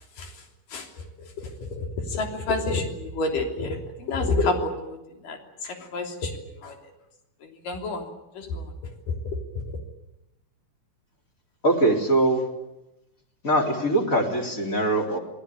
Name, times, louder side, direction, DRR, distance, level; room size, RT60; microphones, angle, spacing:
voice 1, 1.8-5.0 5.2-5.4 5.6-6.3 6.6-6.7 7.7-8.0 8.4-8.6, left 2 dB, 85° left, 3 dB, 4.9 m, -28 dB
voice 2, 11.6-12.5 13.4-15.2, right 1 dB, 25° left, 1 dB, 4.0 m, -22 dB
28.0 x 20.5 x 8.6 m, 0.93 s
omnidirectional pair, 3.7 m